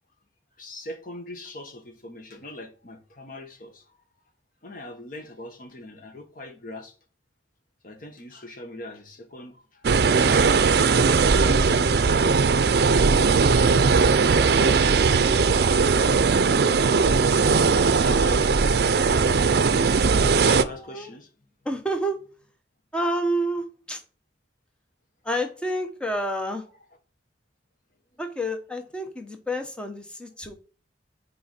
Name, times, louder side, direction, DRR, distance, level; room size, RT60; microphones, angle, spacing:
voice 1, 0.6-3.9 4.6-6.9 7.8-11.2 18.0-18.5 20.0-21.3, left 1 dB, 50° left, 1.3 m, -40 dB
sound 1, 9.8-20.6, right 4 dB, 60° right, 0.5 m, -19 dB
voice 2, 20.6-21.1 21.6-22.2 22.9-24.0 25.2-26.6 28.2-30.5, right 1 dB, 5° left, 0.9 m, -29 dB
6.2 x 4.5 x 4.2 m
head